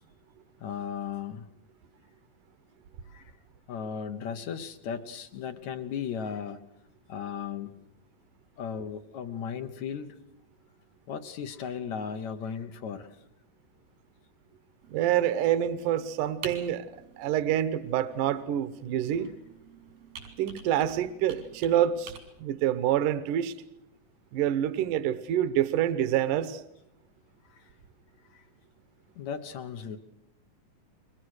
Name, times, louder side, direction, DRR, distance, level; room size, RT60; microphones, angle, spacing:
voice 1, 0.6-1.5 3.1-3.3 3.7-6.6 7.1-7.7 8.6-10.2 11.1-13.2 27.4-27.7 28.3-28.4 29.2-30.0, left 7 dB, 65° left, 7 dB, 2.3 m, -36 dB
Computer keyboard, 14.8-22.2, right 5 dB, 85° right, 5.3 m, -48 dB
voice 2, 14.9-16.9 17.2-19.3 20.4-23.5 24.3-26.6, right 11 dB, 70° right, 13 dB, 2.5 m, -27 dB
30.0 x 23.0 x 6.5 m, 0.78 s
omnidirectional pair, 4.0 m